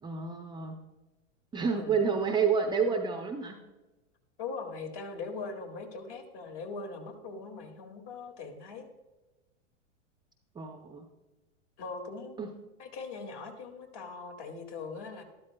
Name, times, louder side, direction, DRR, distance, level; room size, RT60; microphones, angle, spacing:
voice 1, 0.0-0.8 1.5-3.6 10.6-11.1 12.4-12.5, right 5 dB, 10° right, 4 dB, 0.5 m, -29 dB
voice 2, 4.4-8.9 11.8-12.4 12.8-15.2, left 4 dB, 50° left, 4 dB, 2.1 m, -41 dB
12.5 x 12.5 x 2.2 m, 1.1 s
hypercardioid pair, 120°, 38 cm